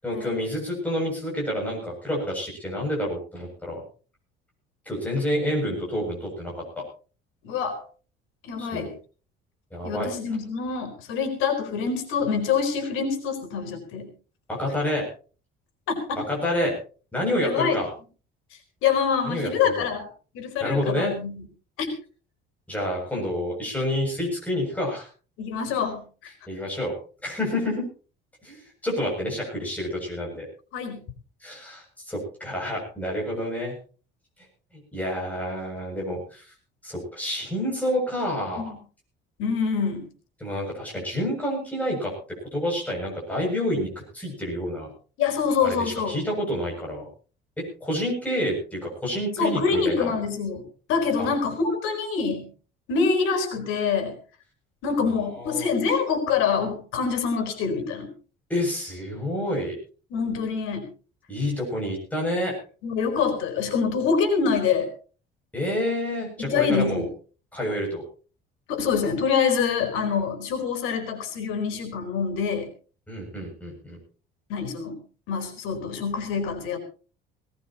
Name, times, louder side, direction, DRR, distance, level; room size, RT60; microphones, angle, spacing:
voice 1, 0.0-3.8 4.9-6.6 8.6-8.9 9.7-10.1 14.5-15.1 16.3-16.8 17.1-17.9 19.2-19.5 19.8-19.9 20.6-21.1 22.7-25.1 26.5-27.0 27.2-27.9 28.4-30.5 31.4-33.8 34.9-36.5 36.8-38.7 40.4-42.1 42.4-43.9 44.1-44.9 45.6-47.1 47.6-50.1 51.2-51.3 55.4-55.7 58.5-59.7 61.3-62.5 65.5-67.1 67.5-68.0 73.1-74.0, left 1 dB, 5° left, -2 dB, 7.5 m, -28 dB
voice 2, 7.4-7.8 8.4-8.9 9.8-14.1 15.9-16.2 17.4-17.8 18.8-20.1 20.3-21.4 21.8-22.0 25.4-26.3 30.7-31.0 38.6-38.8 39.4-40.1 45.2-46.2 49.4-50.6 50.9-52.5 52.9-54.1 54.8-58.1 60.1-60.9 62.8-64.9 66.4-67.1 68.7-72.7 74.5-75.0 75.3-76.8, left 6 dB, 85° left, 6 dB, 4.3 m, -25 dB
20.0 x 18.0 x 3.0 m, 0.37 s
cardioid pair, 175°, 20 cm